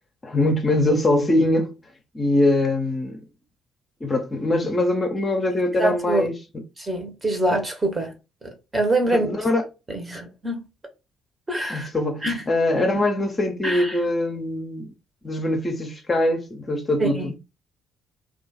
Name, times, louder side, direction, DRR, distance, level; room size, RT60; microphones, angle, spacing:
voice 1, 0.2-1.7 2.1-3.2 4.0-6.4 9.1-9.6 11.7-14.9 15.2-17.3, left 1 dB, 25° left, 0.7 m, -22 dB
voice 2, 5.8-6.3 6.8-8.1 8.4-9.3 9.9-10.7 11.5-11.9 12.2-12.4 13.6-14.0 17.0-17.3, right 1 dB, 20° right, 1.0 m, -25 dB
2.4 x 2.3 x 3.9 m
figure-of-eight pair, 45°, 0 cm